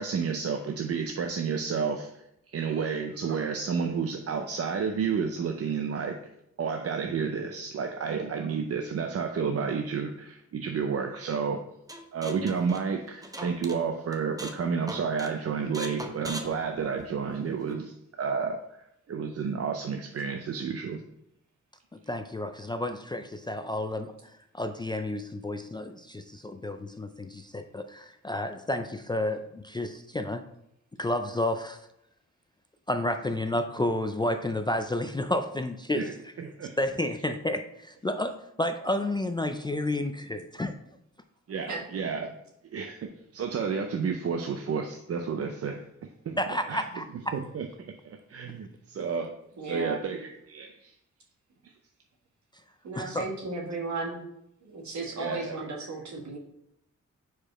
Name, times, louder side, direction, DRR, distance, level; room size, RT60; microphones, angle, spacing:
voice 1, 0.0-2.1 2.5-6.2 6.6-11.6 12.1-18.6 19.1-21.0 35.9-36.1 36.4-36.8 41.5-42.3 42.7-45.9 46.3-46.4 46.7-46.8 47.3-49.3 49.6-50.9 55.2-55.6, right 6 dB, 55° right, 5 dB, 0.5 m, -31 dB
sound 1, 11.9-13.8 14.1-14.6 14.9-15.3 15.7-17.3, right 1 dB, 10° right, 0.6 m, -40 dB
voice 2, 21.9-30.4 31.0-31.8 32.9-36.3 36.8-40.7 46.4-47.3 53.0-53.3, left 1 dB, 15° left, 7 dB, 0.3 m, -31 dB
voice 3, 49.6-50.0 52.8-54.2 54.6-56.4, right 3 dB, 70° right, -1 dB, 1.6 m, -35 dB
4.9 x 4.7 x 4.3 m, 0.77 s
wide cardioid pair, 115°, 30 cm